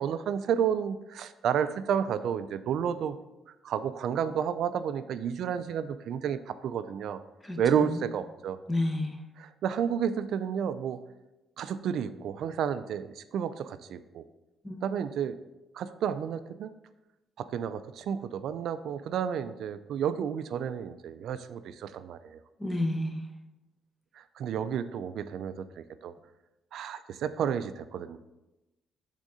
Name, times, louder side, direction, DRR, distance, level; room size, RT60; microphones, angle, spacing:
voice 1, 0.0-3.2 3.6-7.2 7.6-8.6 9.4-11.0 11.6-14.2 14.8-15.4 15.7-16.7 17.4-22.4 24.1-26.1 26.7-28.2, right 8 dB, 70° right, 12 dB, 0.3 m, -31 dB
voice 2, 8.7-9.1 14.6-14.8 22.6-23.2, left 1 dB, 15° left, 4 dB, 0.8 m, -29 dB
6.2 x 3.7 x 5.4 m, 1.0 s
cardioid pair, 145°, 0 cm